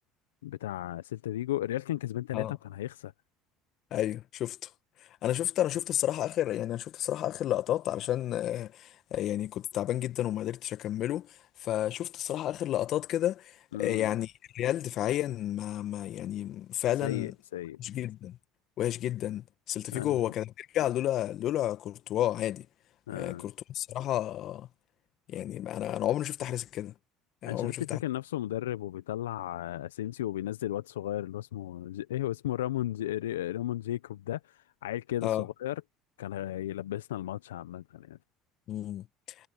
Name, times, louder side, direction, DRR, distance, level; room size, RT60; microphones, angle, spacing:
voice 1, 0.4-3.1 13.7-14.1 17.0-17.8 19.9-20.2 23.1-23.5 27.5-35.8 36.2-38.2, left 13 dB, 85° left, 0.7 m, -35 dB
voice 2, 3.9-4.7 5.2-17.3 17.8-18.4 18.8-22.7 23.1-24.7 25.3-26.9 27.4-28.0 35.2-35.4 38.7-39.1, left 12 dB, 55° left, 1.6 m, -31 dB
hypercardioid pair, 75°, 0 cm